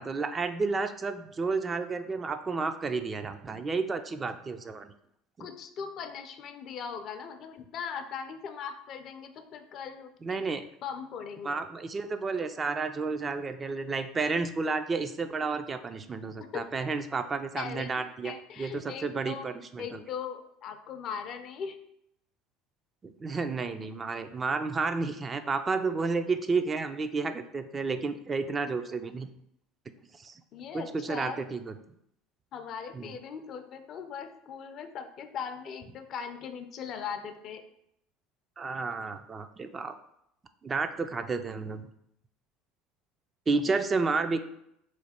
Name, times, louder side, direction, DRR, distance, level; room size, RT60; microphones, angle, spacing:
voice 1, 0.0-4.9 5.4-5.5 10.2-10.7 11.4-20.0 23.0-29.3 30.1-30.3 30.7-31.7 32.9-33.1 38.6-39.9 40.6-41.9 43.5-44.4, right 4 dB, 30° right, 9 dB, 0.3 m, -31 dB
voice 2, 5.4-10.4 10.8-11.6 16.4-16.6 17.6-19.5 19.8-21.8 30.5-31.5 32.5-37.6, left 7 dB, 55° left, 8 dB, 0.4 m, -39 dB
3.1 x 2.2 x 4.2 m, 0.76 s
hypercardioid pair, 75°, 0 cm